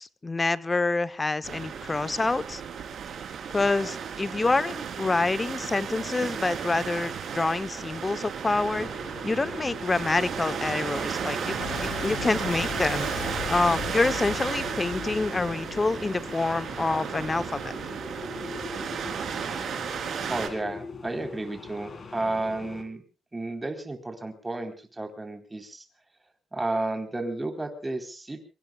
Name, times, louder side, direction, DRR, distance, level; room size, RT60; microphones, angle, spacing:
voice 1, 0.0-2.6 3.5-8.9 9.2-17.7, left 3 dB, 25° left, 15 dB, 1.0 m, -27 dB
sound 1, 1.4-20.5, right 7 dB, 60° right, 4.0 m, -34 dB
sound 2, 8.5-22.8, left 4 dB, 40° left, 4.0 m, -42 dB
Boom, 11.6-16.8, left 11 dB, 85° left, 1.4 m, -38 dB
voice 2, 20.3-23.0 23.3-25.9 26.5-28.4, right 2 dB, 15° right, 5 dB, 4.1 m, -32 dB
25.0 x 23.0 x 2.4 m, 0.35 s
cardioid pair, 90°, 0 cm